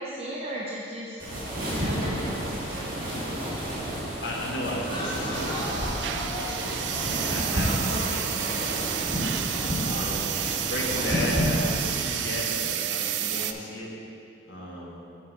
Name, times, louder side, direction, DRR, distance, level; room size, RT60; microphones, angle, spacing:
voice 1, 0.0-3.3 7.9-8.2, equal, 35° right, -5 dB, 0.7 m, -37 dB
sound 1, 1.2-12.4, equal, 50° right, 1.9 m, -30 dB
voice 2, 4.2-5.8 6.3-6.8 7.1-8.4 9.0-9.3 9.8-13.9 14.5-15.0, left 1 dB, 70° left, -4 dB, 1.5 m, -34 dB
sound 2, 4.8-10.2, left 1 dB, 25° left, 0.7 m, -38 dB
sound 3, 5.3-13.5, right 10 dB, 70° right, 0.4 m, -31 dB
7.5 x 4.3 x 5.9 m, 2.5 s
head